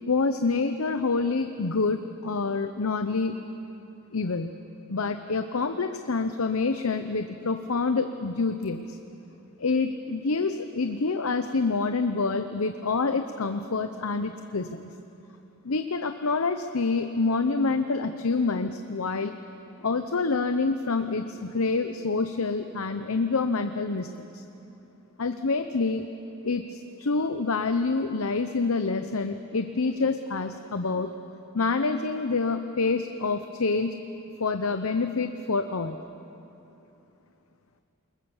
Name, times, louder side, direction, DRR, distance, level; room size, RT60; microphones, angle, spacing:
voice 1, 0.0-3.4 4.1-4.5 4.9-9.0 9.6-14.9 15.6-19.3 19.8-24.4 25.2-26.1 26.4-31.1 31.5-34.0 34.4-36.0, left 4 dB, 85° left, 8 dB, 0.8 m, -27 dB
28.0 x 20.5 x 7.3 m, 2.9 s
head